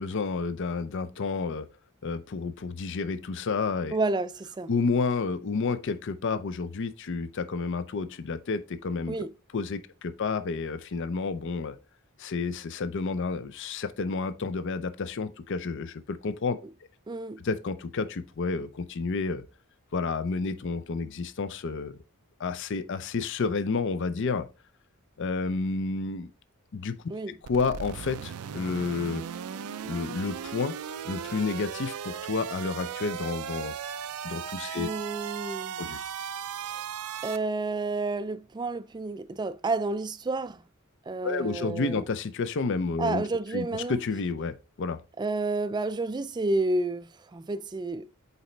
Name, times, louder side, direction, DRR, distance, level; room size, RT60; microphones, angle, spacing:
voice 1, 0.0-1.7 2.0-4.0 4.7-9.2 9.5-11.8 12.2-16.6 17.4-19.4 19.9-22.0 22.4-24.5 25.2-26.3 26.7-29.2 29.8-30.8 31.0-33.8 34.2-34.9 35.8-36.1 41.2-43.2 43.5-45.0, left 4 dB, 55° left, 0.5 m, -30 dB
voice 2, 3.9-4.7 9.1-9.3 17.1-17.4 27.1-27.4 34.8-35.8 36.6-36.8 37.2-40.6 41.1-42.0 43.0-44.0 45.2-48.1, right 2 dB, 20° right, 0.3 m, -30 dB
sound 1, 27.4-37.4, right 8 dB, 85° right, 0.4 m, -37 dB
8.2 x 4.1 x 3.2 m
head